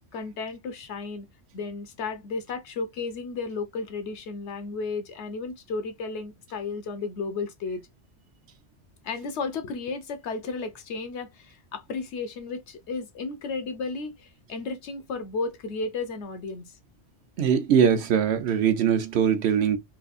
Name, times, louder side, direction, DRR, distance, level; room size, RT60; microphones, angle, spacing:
voice 1, 0.1-1.3 1.5-7.8 9.0-16.7, left 4 dB, 75° left, 1.1 m, -33 dB
voice 2, 17.4-19.8, right 8 dB, 70° right, 0.9 m, -21 dB
3.3 x 2.8 x 2.5 m
omnidirectional pair, 1.2 m